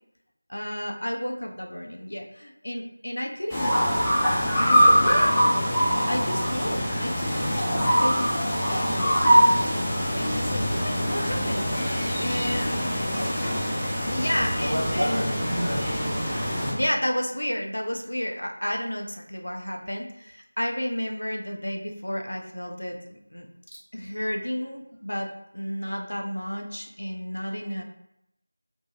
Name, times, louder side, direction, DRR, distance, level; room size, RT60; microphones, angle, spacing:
voice 1, 0.5-3.9 4.6-5.3 6.1-8.3 8.7-11.9 12.2-12.9 14.0-15.3 16.4-23.5 23.9-25.3 25.5-27.8, equal, 70° left, 2 dB, 0.5 m, -32 dB
sound 1, 3.5-16.7, equal, 5° left, 0.4 m, -23 dB
voice 2, 12.8-13.4 14.6-16.1 16.5-16.8 23.7-23.8, equal, 70° right, 2 dB, 0.6 m, -31 dB
2.5 x 2.2 x 2.8 m, 0.84 s
figure-of-eight pair, 170°, 0 cm